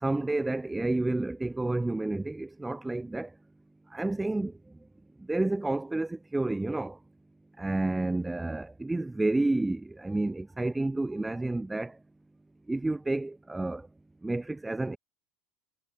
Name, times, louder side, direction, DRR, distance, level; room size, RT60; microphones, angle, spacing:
voice 1, 0.0-3.3 3.9-4.5 5.3-7.0 7.6-11.9 12.7-13.8 14.2-15.0, right 2 dB, 10° right, 1.1 m, -30 dB
supercardioid pair, 125°, 0 cm